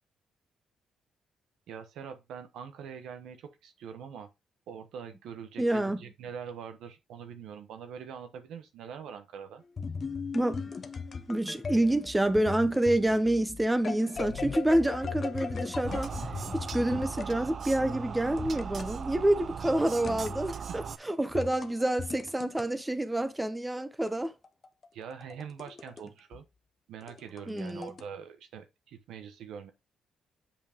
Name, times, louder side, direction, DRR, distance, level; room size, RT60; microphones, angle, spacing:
voice 1, 1.7-4.3 4.7-9.6 24.9-26.4 26.9-29.7, right 7 dB, 80° right, 1.0 m, -44 dB
voice 2, 5.6-6.0 10.3-10.6 11.3-16.1 16.5-24.3 27.5-27.9, right 1 dB, 10° right, 0.8 m, -28 dB
sound 1, 9.8-17.3 18.4-18.9 20.0-20.5 21.3-22.6 24.1-26.0 26.3-26.4 27.0-28.0, left 5 dB, 40° left, 0.7 m, -38 dB
sound 2, 15.9-21.0, right 6 dB, 50° right, 0.4 m, -38 dB
7.3 x 5.2 x 3.0 m
cardioid pair, 90°, 0 cm